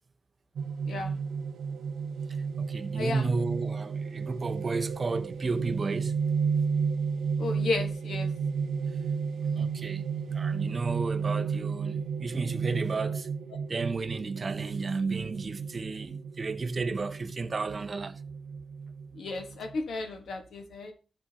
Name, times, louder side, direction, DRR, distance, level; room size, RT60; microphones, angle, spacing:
sound 1, 0.6-19.7, right 5 dB, 85° right, 0.6 m, -32 dB
voice 1, 0.9-1.2 2.9-3.3 7.4-8.3 19.1-20.9, left 3 dB, 85° left, 1.4 m, -33 dB
voice 2, 2.6-6.2 9.6-10.1 10.3-13.3 13.7-18.2, right 4 dB, 35° right, 0.6 m, -32 dB
13.5 x 6.1 x 2.9 m
wide cardioid pair, 145°, 0 cm